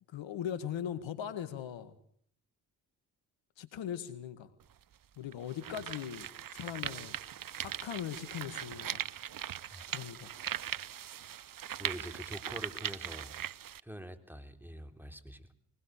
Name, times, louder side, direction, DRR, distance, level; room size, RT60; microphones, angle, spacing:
voice 1, 0.1-2.0 3.6-4.5 5.2-7.1 7.6-9.0 9.9-10.3, left 9 dB, 70° left, 12 dB, 1.9 m, -40 dB
sound 1, 4.6-4.7 5.3-13.8, right 10 dB, 45° right, 0.8 m, -40 dB
voice 2, 11.8-13.4 13.8-15.5, equal, 5° right, 9 dB, 3.7 m, -45 dB
22.5 x 20.5 x 6.7 m, 0.65 s
hypercardioid pair, 40°, 47 cm